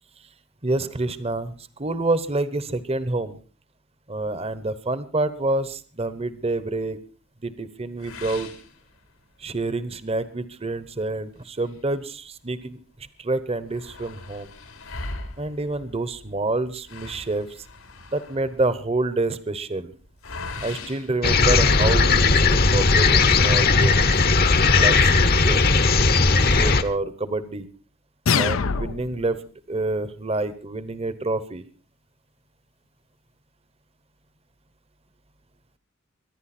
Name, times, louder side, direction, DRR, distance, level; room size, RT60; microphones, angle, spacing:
voice 1, 0.6-3.4 4.1-7.0 7.4-8.5 9.4-12.8 13.2-14.5 15.4-17.7 18.1-19.9 20.6-24.1 24.7-25.7 26.3-27.7 28.3-29.4 29.7-31.6, right 2 dB, 30° right, 15 dB, 1.0 m, -27 dB
sound 1, 8.0-9.5 9.9-10.0 10.4-10.5 11.3-12.7 13.0-13.1 13.3-22.0 22.7-23.9, left 3 dB, 90° left, 3.3 m, -41 dB
sound 2, 21.2-26.8, left 4 dB, 45° left, 1.0 m, -17 dB
sound 3, 28.3-29.3, left 6 dB, 70° left, 0.6 m, -23 dB
24.0 x 11.0 x 4.3 m, 0.36 s
head